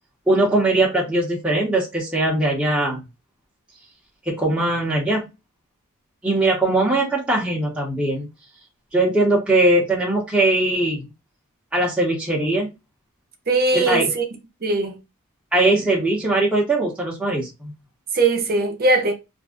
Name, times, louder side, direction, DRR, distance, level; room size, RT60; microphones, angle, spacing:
voice 1, 0.3-3.0 4.3-5.3 6.2-8.3 8.9-11.1 11.7-12.7 13.7-14.1 15.5-17.7, right 2 dB, 5° right, 0.8 m, -20 dB
voice 2, 13.5-14.2 14.6-15.0 18.1-19.1, right 3 dB, 45° right, 0.7 m, -20 dB
2.5 x 2.2 x 3.5 m
head